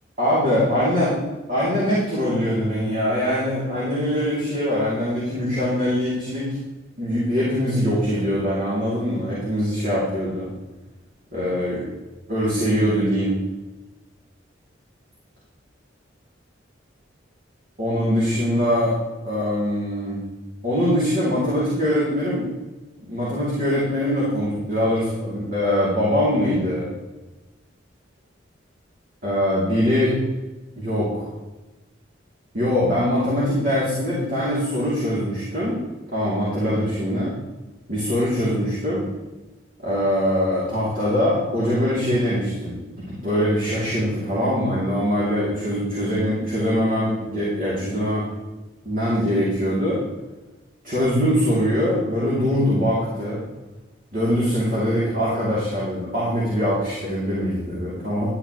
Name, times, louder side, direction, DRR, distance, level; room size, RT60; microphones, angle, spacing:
voice 1, 0.2-1.1 1.5-6.6 7.0-10.5 11.3-11.8 12.3-13.4 17.8-18.9 19.2-20.2 20.6-22.4 23.0-26.9 29.2-30.1 30.8-31.3 32.5-35.7 36.1-37.3 37.9-39.0 39.8-42.7 43.1-48.2 48.8-50.0 50.8-53.4 54.1-58.3, equal, 50° right, -10 dB, 3.0 m, -22 dB
11.5 x 9.5 x 3.2 m, 1.1 s
head